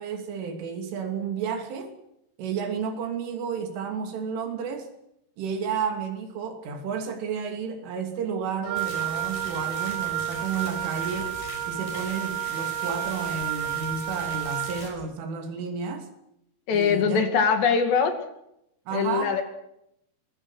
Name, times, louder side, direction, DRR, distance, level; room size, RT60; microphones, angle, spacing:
voice 1, 0.0-1.9 2.4-4.9 5.4-11.4 11.7-16.1 16.7-17.2 18.9-19.4, right 6 dB, 80° right, 5 dB, 5.4 m, -31 dB
Wind instrument woodwind instrument, 8.6-14.9, right 12 dB, 60° right, 3.0 m, -31 dB
sound 1, 8.8-14.9, left 3 dB, 40° left, 6.5 m, -42 dB
voice 2, 16.7-18.2 18.9-19.4, left 6 dB, 65° left, 6 dB, 4.3 m, -22 dB
25.0 x 22.0 x 6.4 m, 0.80 s
omnidirectional pair, 5.6 m